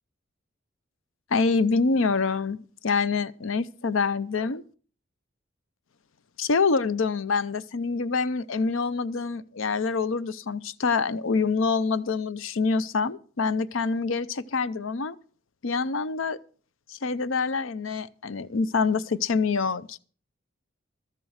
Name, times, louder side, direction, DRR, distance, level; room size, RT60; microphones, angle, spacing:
voice 1, 1.3-4.6 6.4-15.2 15.6-16.4 16.9-20.0, left 4 dB, 75° left, 0.6 m, -26 dB
14.0 x 7.5 x 6.4 m
head